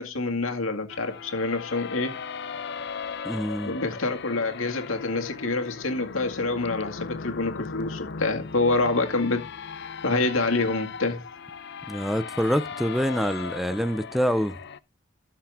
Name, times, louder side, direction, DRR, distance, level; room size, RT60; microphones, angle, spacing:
voice 1, 0.0-2.1 3.6-9.4 9.8-11.2, left 3 dB, 90° left, 2.1 m, -27 dB
sound 1, 0.9-14.8, left 5 dB, 60° left, 0.6 m, -38 dB
voice 2, 3.2-3.7 11.9-14.5, equal, ahead, 0.4 m, -26 dB
13.5 x 5.9 x 3.6 m
head